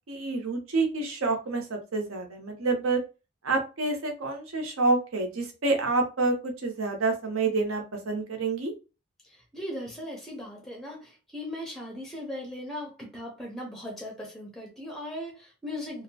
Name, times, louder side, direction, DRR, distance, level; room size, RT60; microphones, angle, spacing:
voice 1, 0.1-3.0 3.4-8.7, right 3 dB, 75° right, 3 dB, 0.7 m, -28 dB
voice 2, 9.2-16.0, left 1 dB, ahead, 0 dB, 0.5 m, -38 dB
2.7 x 2.0 x 2.7 m, 0.30 s
head